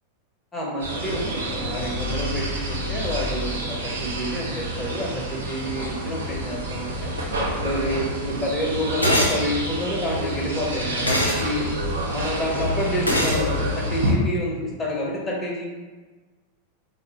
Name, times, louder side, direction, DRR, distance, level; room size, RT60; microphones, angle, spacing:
voice 1, 0.5-7.1 7.6-11.7 12.1-15.6, equal, 15° left, -2 dB, 0.7 m, -28 dB
sound 1, 0.8-14.1, right 1 dB, 70° right, 0.5 m, -28 dB
sound 2, 9.0-9.4 11.1-11.4 13.1-13.4, left 1 dB, 85° left, 0.5 m, -21 dB
3.8 x 2.1 x 2.7 m, 1.3 s
figure-of-eight pair, 90°, 0 cm